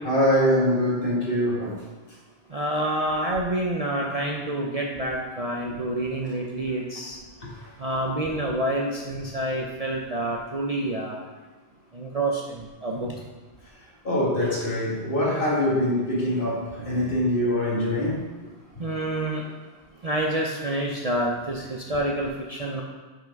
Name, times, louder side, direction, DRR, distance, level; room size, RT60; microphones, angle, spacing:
voice 1, 0.0-1.8 7.4-7.5 14.0-18.2, left 1 dB, 50° left, -4 dB, 2.0 m, -23 dB
voice 2, 2.5-7.2 7.8-11.2 11.9-13.1 18.8-19.4 20.0-22.8, right 1 dB, 40° right, -1 dB, 0.7 m, -28 dB
5.8 x 5.7 x 5.1 m, 1.3 s
omnidirectional pair, 1.2 m